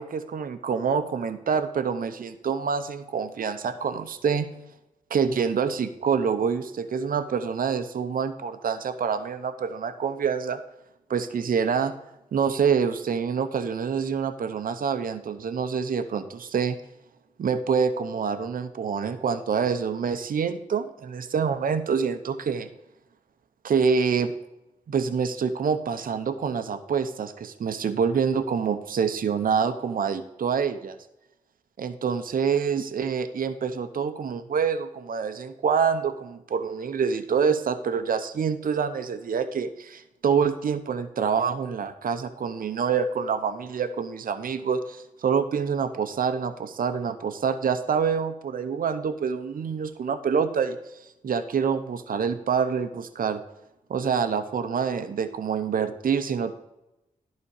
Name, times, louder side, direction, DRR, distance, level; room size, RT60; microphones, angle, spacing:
voice 1, 0.0-4.5 5.1-10.6 11.1-11.9 12.3-16.8 17.4-22.7 23.6-24.3 24.9-31.0 31.8-50.8 51.2-53.4 53.9-56.5, right 6 dB, 70° right, 9 dB, 0.8 m, -26 dB
11.0 x 4.3 x 6.5 m, 0.90 s
supercardioid pair, 45°, 15 cm